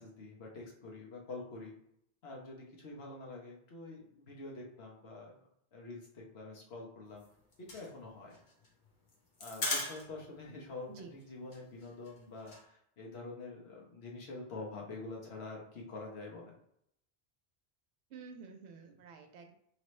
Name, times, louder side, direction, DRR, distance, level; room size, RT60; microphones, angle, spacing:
voice 1, 0.0-1.7 2.2-7.2 7.6-8.4 9.4-16.6, left 3 dB, 70° left, -1 dB, 1.2 m, -46 dB
sound 1, 7.1-10.4 10.7-10.8 11.0-11.2 11.5-12.6, left 2 dB, 45° left, 1.0 m, -39 dB
voice 2, 18.1-19.5, right 5 dB, 80° right, 5 dB, 0.9 m, -50 dB
4.4 x 3.1 x 3.1 m, 0.74 s
omnidirectional pair, 1.1 m